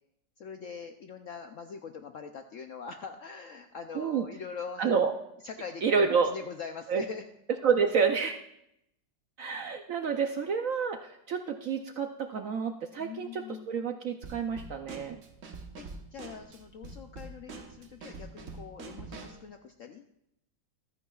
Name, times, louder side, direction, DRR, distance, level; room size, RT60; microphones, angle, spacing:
voice 1, 0.4-5.0 5.4-7.2 13.0-13.7 15.8-20.0, left 6 dB, 65° left, 6 dB, 0.8 m, -43 dB
voice 2, 4.0-4.3 4.8-5.1 5.8-6.3 6.9-7.0 7.6-8.4 9.4-15.2, right 6 dB, 65° right, 5 dB, 0.8 m, -29 dB
Drum kit / Snare drum, 14.2-19.4, right 3 dB, 50° right, 1.3 m, -45 dB
14.5 x 13.0 x 2.3 m, 0.78 s
omnidirectional pair, 1.9 m